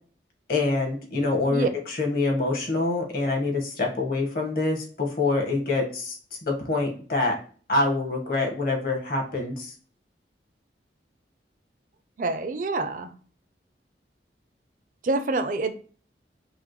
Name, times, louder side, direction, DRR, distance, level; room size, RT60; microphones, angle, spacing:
voice 1, 0.5-7.4 7.7-9.7, left 3 dB, 55° left, 1.3 m, -26 dB
voice 2, 12.2-13.1 15.0-15.7, right 3 dB, 45° right, 0.5 m, -26 dB
5.7 x 2.1 x 3.0 m
head